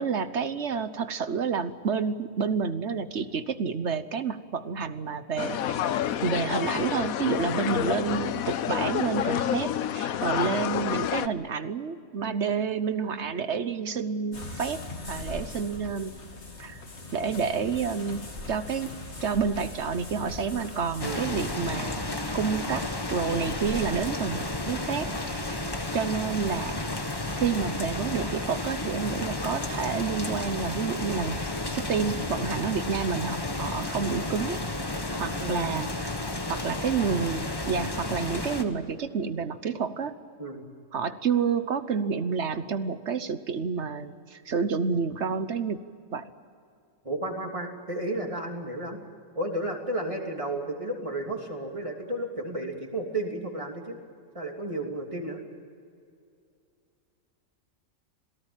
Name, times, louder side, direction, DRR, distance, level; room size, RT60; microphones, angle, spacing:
voice 1, 0.0-5.8 6.2-14.8 15.1-16.1 16.6-16.8 17.1-18.9 19.2-22.0 22.3-25.6 25.9-26.7 27.4-31.4 31.7-34.6 35.2-35.9 36.5-40.1 40.9-45.8 46.1-46.3, right 6 dB, 55° right, 12 dB, 1.2 m, -29 dB
sound 1, 5.4-11.3, left 10 dB, 85° left, 1.2 m, -28 dB
sound 2, 14.3-21.6, left 2 dB, 50° left, 2.7 m, -40 dB
sound 3, 21.0-38.6, left 2 dB, 15° left, 1.5 m, -32 dB
voice 2, 35.4-35.9 40.4-40.6 47.0-49.0 49.3-54.0 54.3-55.4, right 1 dB, 25° right, 2 dB, 3.1 m, -33 dB
27.0 x 18.0 x 9.0 m, 2.4 s
omnidirectional pair, 1.4 m